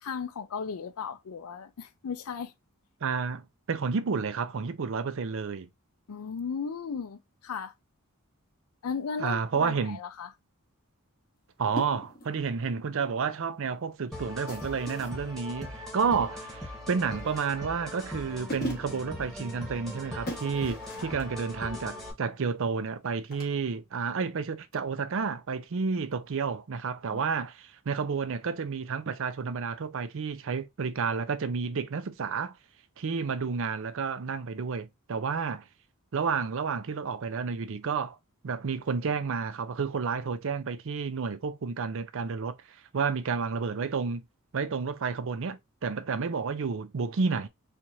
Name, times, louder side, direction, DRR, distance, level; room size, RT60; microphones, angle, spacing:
voice 1, 0.0-2.5 6.1-7.7 8.8-10.3 21.0-21.1 27.1-27.2, left 6 dB, 80° left, 0.5 m, -36 dB
voice 2, 3.0-5.7 9.2-10.0 11.6-32.5 33.0-35.6 36.1-38.2 38.4-42.6 42.9-44.2 44.5-47.5, right 5 dB, 60° right, 0.5 m, -31 dB
sound 1, 11.8-12.4 14.5-15.2 17.0-17.6 18.2-18.3 18.5-19.1 20.3-21.3 23.3-23.5, left 1 dB, 45° left, 1.7 m, -39 dB
sound 2, 14.1-22.1, left 1 dB, ahead, 1.3 m, -40 dB
4.5 x 2.5 x 2.7 m
head